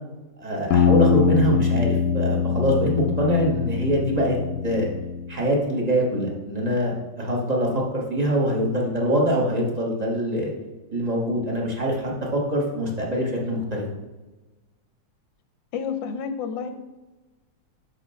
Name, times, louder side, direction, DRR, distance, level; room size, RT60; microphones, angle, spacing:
voice 1, 0.4-4.4 4.6-4.9 5.3-10.5 10.9-13.8, equal, 25° right, -2 dB, 1.0 m, -24 dB
sound 1, 0.7-5.4, left 6 dB, 90° left, 0.7 m, -23 dB
voice 2, 15.7-16.7, left 6 dB, 70° left, 8 dB, 1.2 m, -29 dB
6.0 x 4.3 x 5.6 m, 1.1 s
omnidirectional pair, 2.3 m